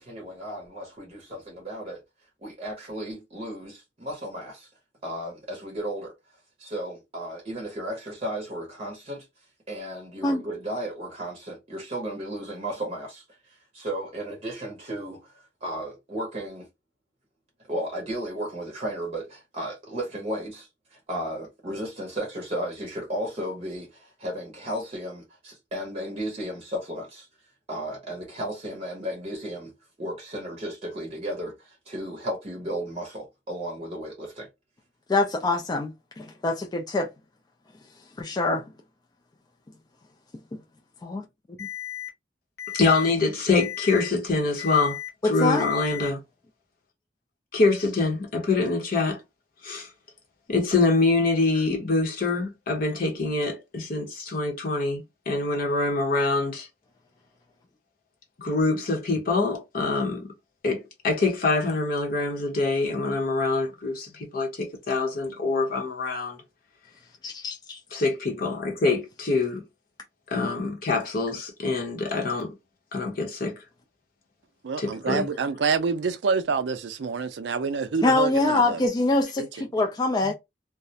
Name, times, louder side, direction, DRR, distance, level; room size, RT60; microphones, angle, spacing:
voice 1, 0.0-2.0 2.4-4.7 5.0-6.1 6.6-9.3 9.7-16.7 17.7-27.3 27.7-29.7 30.0-34.5, right 1 dB, 35° right, 0.7 m, -34 dB
voice 2, 35.1-37.1 38.2-38.6 41.0-41.2 41.6-41.7 45.2-45.7 67.2-67.8 78.0-80.3, left 2 dB, 25° left, 0.3 m, -24 dB
Alarm, 41.6-42.1 42.6-43.1 43.6-44.1 44.6-45.1 45.6-46.1, left 13 dB, 90° left, 0.8 m, -35 dB
voice 3, 42.7-45.0 45.2-46.2 47.5-49.2 49.6-49.9 50.5-56.7 58.4-60.3 60.6-66.4 67.9-69.6 70.3-72.6 72.9-73.6 74.8-75.3, left 3 dB, 55° left, 0.8 m, -25 dB
voice 4, 74.6-78.8 79.4-79.5, right 5 dB, 75° right, 0.4 m, -27 dB
2.3 x 2.0 x 2.6 m
head